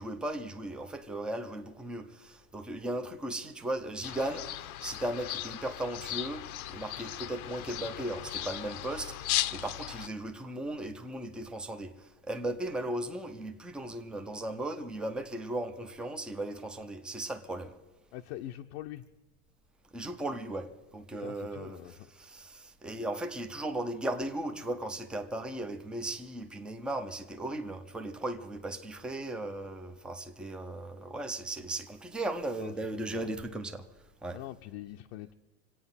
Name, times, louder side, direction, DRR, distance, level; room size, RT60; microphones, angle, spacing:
voice 1, 0.0-17.8 19.9-33.8 34.2-34.4, right 1 dB, ahead, 0.4 m, -37 dB
sound 1, 4.0-10.1, left 13 dB, 75° left, 0.8 m, -37 dB
voice 2, 18.1-19.0 21.1-22.1 32.6-33.3 34.3-35.3, left 13 dB, 45° left, 0.6 m, -43 dB
26.0 x 8.9 x 5.7 m
supercardioid pair, 145°, 43 cm